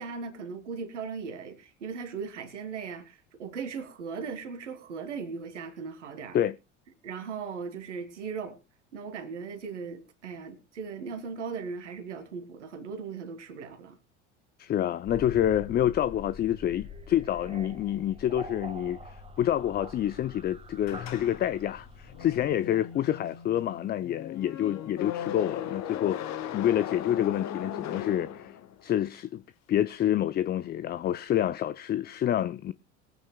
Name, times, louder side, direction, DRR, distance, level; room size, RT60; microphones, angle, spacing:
voice 1, 0.0-6.4 7.0-8.6 8.9-14.0, right 5 dB, 80° right, 2.1 m, -38 dB
voice 2, 14.6-28.5 28.8-29.4 29.7-32.7, left 11 dB, 30° left, 0.5 m, -28 dB
sound 1, 15.1-25.1, left 1 dB, 15° right, 1.7 m, -46 dB
sound 2, 20.8-28.9, left 10 dB, 45° left, 1.3 m, -38 dB
22.0 x 9.2 x 2.2 m
figure-of-eight pair, 70°, 35 cm